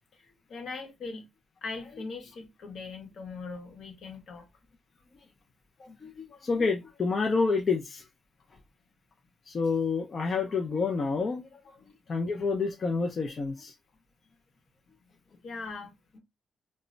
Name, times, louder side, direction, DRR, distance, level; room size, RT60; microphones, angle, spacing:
voice 1, 0.2-1.3 1.6-4.5 11.8-11.9 15.4-16.2, left 4 dB, 65° left, 0.9 m, -40 dB
voice 2, 5.8-8.0 9.5-11.4 12.1-13.7, left 4 dB, 40° left, 0.4 m, -28 dB
2.1 x 2.1 x 3.7 m
cardioid pair, 125°, 0 cm